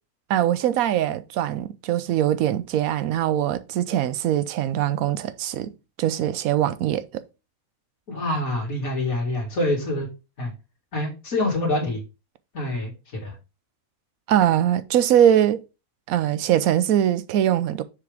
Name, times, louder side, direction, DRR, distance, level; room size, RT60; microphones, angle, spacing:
voice 1, 0.3-5.7 6.0-7.2 14.3-15.6 16.1-17.8, right 11 dB, 80° right, 1.1 m, -22 dB
voice 2, 8.1-10.1 10.4-10.5 10.9-12.0 12.5-13.3, left 1 dB, 80° left, 2.7 m, -26 dB
6.7 x 5.0 x 3.5 m
omnidirectional pair, 1.5 m